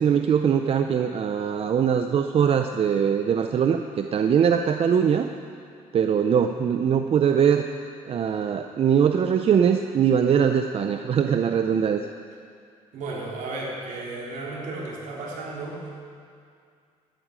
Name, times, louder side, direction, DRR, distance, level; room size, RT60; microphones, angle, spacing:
voice 1, 0.0-5.3 5.9-7.7 8.1-12.0, right 7 dB, 45° right, 6 dB, 0.6 m, -22 dB
voice 2, 12.9-15.8, right 2 dB, 75° right, -4 dB, 3.6 m, -34 dB
13.0 x 11.0 x 5.1 m, 2.3 s
cardioid pair, 90°, 13 cm